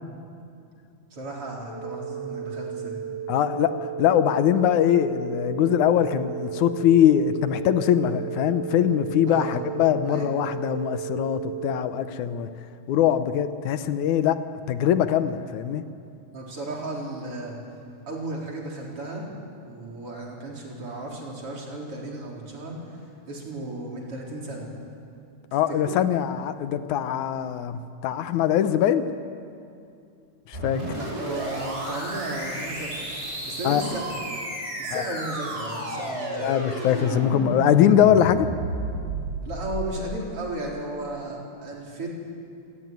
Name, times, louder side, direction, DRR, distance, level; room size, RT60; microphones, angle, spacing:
voice 1, 1.1-3.0 9.3-9.6 10.1-10.5 16.3-17.6 18.1-19.3 19.7-22.8 23.3-24.8 25.8-26.0 30.9-33.1 33.4-34.2 34.8-36.5 39.4-42.1, right 2 dB, 45° right, -2 dB, 4.7 m, -34 dB
sound 1, 1.7-11.7, right 9 dB, 50° left, 7.1 m, -34 dB
voice 2, 3.3-3.7 4.0-12.5 12.9-14.4 14.7-15.9 25.5-29.1 30.5-30.8 33.6-33.8 34.9-35.0 36.4-38.5, left 10 dB, 80° left, 10 dB, 2.3 m, -22 dB
sound 2, 30.5-40.2, right 1 dB, 20° right, 5.2 m, -32 dB
26.0 x 19.0 x 9.2 m, 2.5 s
omnidirectional pair, 3.4 m